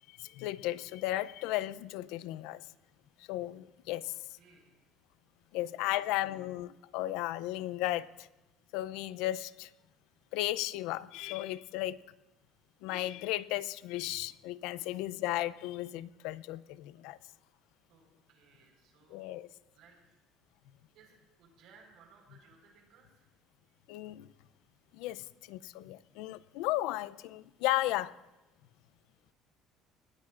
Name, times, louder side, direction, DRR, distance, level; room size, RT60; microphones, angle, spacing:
voice 1, 0.2-2.6 3.3-4.1 5.5-8.3 8.7-9.7 10.3-12.0 12.8-17.2 19.1-19.5 23.9-24.3 25.0-28.1, left 16 dB, 90° left, 18 dB, 0.4 m, -35 dB
voice 2, 4.0-4.7 5.6-6.2 14.7-14.8 17.9-19.4 19.7-20.0 20.9-23.3, right 5 dB, 55° right, 2 dB, 4.3 m, -62 dB
23.5 x 19.5 x 2.5 m, 1.0 s
cardioid pair, 180°, 0 cm